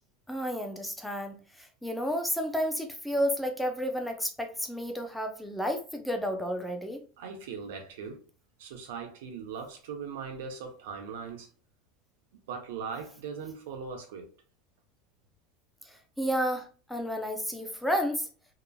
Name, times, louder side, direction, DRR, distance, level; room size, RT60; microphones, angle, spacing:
voice 1, 0.3-7.0 15.8-18.3, equal, ahead, 0.5 m, -31 dB
voice 2, 7.2-8.2 8.6-11.5 12.5-14.3, right 6 dB, 80° right, 0.8 m, -39 dB
2.9 x 2.4 x 2.3 m
supercardioid pair, 130°, 0 cm